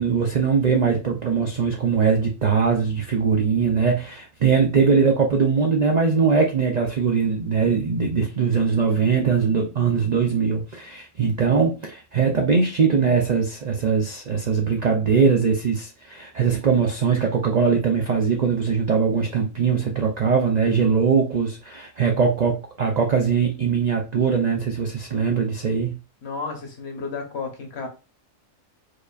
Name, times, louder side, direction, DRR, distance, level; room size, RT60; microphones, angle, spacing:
voice 1, 0.0-26.0, right 5 dB, 75° right, 0.4 m, -21 dB
voice 2, 26.2-27.9, left 4 dB, 55° left, 1.1 m, -32 dB
4.8 x 2.5 x 2.3 m
omnidirectional pair, 1.4 m